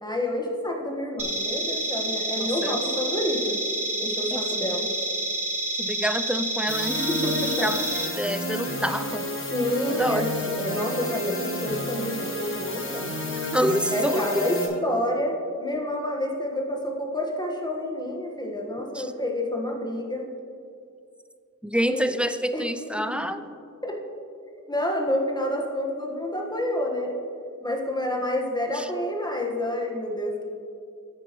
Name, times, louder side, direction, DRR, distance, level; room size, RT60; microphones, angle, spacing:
voice 1, 0.0-3.6 4.0-4.9 6.9-7.7 9.5-13.2 13.9-20.3 21.9-22.1 22.5-22.6 23.0-23.1 23.8-23.9 24.7-27.1 27.6-30.4, left 1 dB, 10° left, 0 dB, 1.3 m, -28 dB
sound 1, 1.2-8.1, right 2 dB, 45° right, 1.7 m, -29 dB
voice 2, 2.3-2.8 4.3-4.7 5.8-7.1 7.6-7.9 8.2-9.3 10.0-10.3 13.4-14.5 18.9-19.1 21.6-23.4 28.7-28.9, equal, 5° right, 10 dB, 0.4 m, -27 dB
sound 2, 6.7-14.7, left 1 dB, 40° left, 1.3 m, -31 dB
9.4 x 9.1 x 3.0 m, 2.4 s
wide cardioid pair, 75°, 33 cm